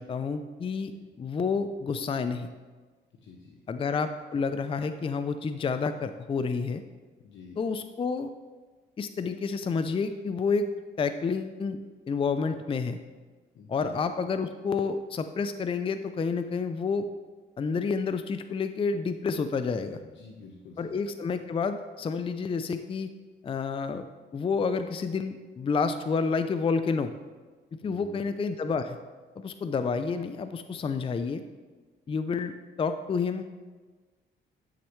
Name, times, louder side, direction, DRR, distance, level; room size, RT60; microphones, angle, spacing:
voice 1, 0.0-0.9 1.2-2.5 3.7-6.8 7.6-8.3 9.0-10.7 11.0-11.8 12.1-13.0 13.7-17.1 17.6-20.0 20.8-23.1 23.4-24.1 24.3-27.1 27.8-29.0 29.4-31.4 32.1-33.4, left 5 dB, 25° left, 10 dB, 0.4 m, -29 dB
voice 2, 3.2-3.6 7.2-7.6 13.5-14.0 20.0-21.1 27.8-28.2, left 4 dB, 70° left, -2 dB, 1.1 m, -49 dB
11.5 x 6.2 x 3.1 m, 1.4 s
cardioid pair, 90°, 20 cm